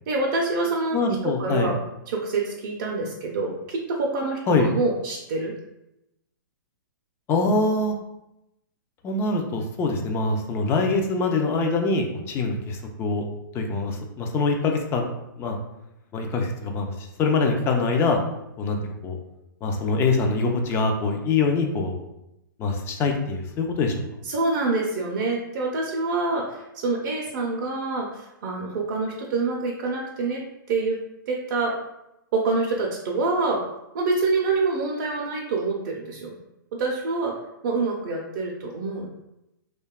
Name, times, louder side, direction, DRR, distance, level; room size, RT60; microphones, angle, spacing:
voice 1, 0.1-1.8 2.1-5.5 24.2-30.4 30.7-31.0 31.3-31.7 32.3-33.6 33.9-36.3 36.8-37.3 37.6-39.1, right 3 dB, 55° right, -2 dB, 0.5 m, -26 dB
voice 2, 0.9-1.7 4.5-4.7 7.3-8.0 9.0-13.2 13.5-15.1 15.4-15.6 16.1-16.9 17.2-18.2 18.6-18.8 19.0-19.2 19.6-21.9 22.6-24.0, left 3 dB, 20° left, 3 dB, 0.3 m, -24 dB
2.7 x 2.2 x 2.3 m, 0.89 s
hypercardioid pair, 125°, 11 cm